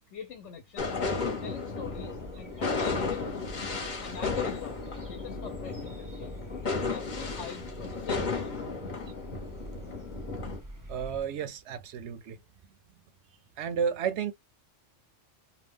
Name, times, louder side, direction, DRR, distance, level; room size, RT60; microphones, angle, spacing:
voice 1, 0.1-0.9 1.4-3.5 4.0-6.3 6.7-8.6, left 7 dB, 75° left, 1.0 m, -43 dB
sound 1, 0.8-10.6, left 4 dB, 40° left, 1.0 m, -34 dB
sound 2, 1.8-11.2, equal, 20° right, 0.7 m, -46 dB
voice 2, 10.9-12.4 13.6-14.3, right 7 dB, 70° right, 0.9 m, -32 dB
2.8 x 2.1 x 3.4 m
omnidirectional pair, 1.2 m